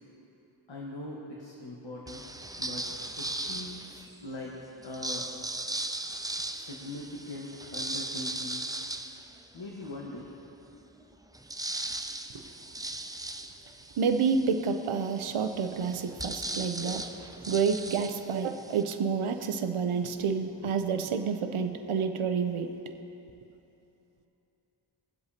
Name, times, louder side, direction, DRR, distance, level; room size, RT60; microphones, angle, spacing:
voice 1, 0.7-2.2 2.6-2.9 3.2-4.5 4.8-5.3 6.5-8.6 9.5-10.3, left 1 dB, 65° left, -3 dB, 1.4 m, -41 dB
sound 1, 2.1-4.2 4.8-10.0 10.5-10.6 10.8-18.8, right 1 dB, 10° right, 0.4 m, -38 dB
voice 2, 14.0-22.7, right 5 dB, 85° right, 7 dB, 0.6 m, -29 dB
19.5 x 7.9 x 2.8 m, 3.0 s
wide cardioid pair, 50°, 49 cm